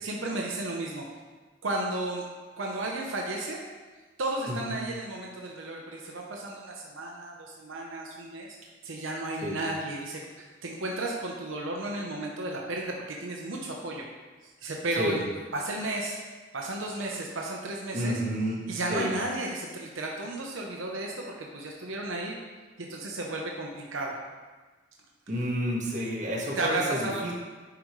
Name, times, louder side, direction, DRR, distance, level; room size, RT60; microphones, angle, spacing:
voice 1, 0.0-1.0 1.6-2.2 2.6-3.6 4.2-8.5 8.8-14.0 14.6-15.2 15.5-16.2 16.5-18.2 18.7-22.3 22.8-24.2 26.5-27.3, right 2 dB, 85° right, -1 dB, 0.9 m, -33 dB
voice 2, 4.5-4.8 9.4-9.6 15.0-15.2 17.9-18.6 18.9-19.1 25.3-27.3, equal, 40° right, -4 dB, 1.7 m, -30 dB
10.0 x 5.0 x 3.2 m, 1.3 s
head